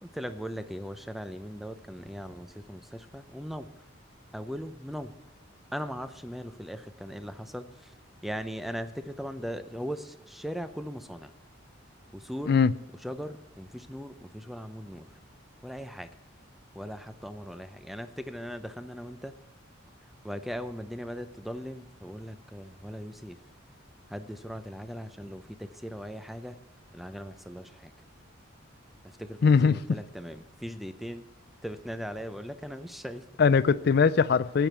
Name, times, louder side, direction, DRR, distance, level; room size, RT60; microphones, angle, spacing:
voice 1, 0.0-3.7 4.3-5.1 5.7-7.9 8.2-11.3 12.1-12.6 13.0-15.1 15.6-16.1 16.7-19.3 20.2-23.4 24.1-26.6 26.9-27.9 29.2-31.2 31.6-33.2, equal, ahead, 0.5 m, -39 dB
voice 2, 29.4-30.0 33.4-34.7, left 5 dB, 50° left, 0.4 m, -21 dB
13.5 x 9.2 x 4.5 m
head